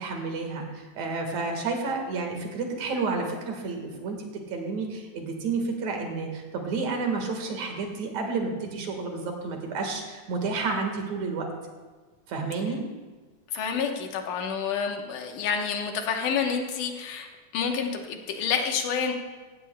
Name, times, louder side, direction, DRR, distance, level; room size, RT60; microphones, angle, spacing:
voice 1, 0.0-11.5 12.3-12.8, right 4 dB, 65° right, 3 dB, 2.8 m, -30 dB
voice 2, 13.5-17.3 17.5-19.1, left 6 dB, 80° left, 4 dB, 2.6 m, -28 dB
16.0 x 15.0 x 2.2 m, 1.4 s
omnidirectional pair, 3.6 m